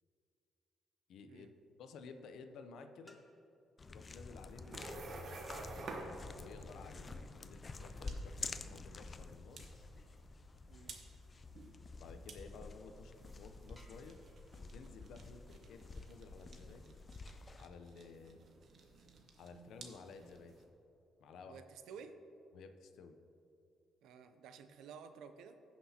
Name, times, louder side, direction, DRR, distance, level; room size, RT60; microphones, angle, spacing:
voice 1, 1.1-1.5 1.8-3.2 3.9-7.1 7.4-9.6 11.9-14.2 14.6-17.0 17.6-18.4 19.3-20.6 21.2-21.6 22.5-23.2, left 4 dB, 75° left, 7 dB, 0.6 m, -54 dB
sound 1, 3.1-3.8 5.4-11.9 12.5-12.6 13.1-13.2 13.8-16.4 18.5-19.5, equal, 5° left, 1.3 m, -73 dB
sound 2, 3.8-17.7, left 3 dB, 35° left, 0.4 m, -49 dB
sound 3, 4.4-20.6, right 3 dB, 55° right, 1.1 m, -53 dB
voice 2, 10.7-11.0 21.5-22.2 24.0-25.6, right 6 dB, 85° right, 9 dB, 0.5 m, -53 dB
15.5 x 6.0 x 2.8 m, 2.8 s
cardioid pair, 90°, 0 cm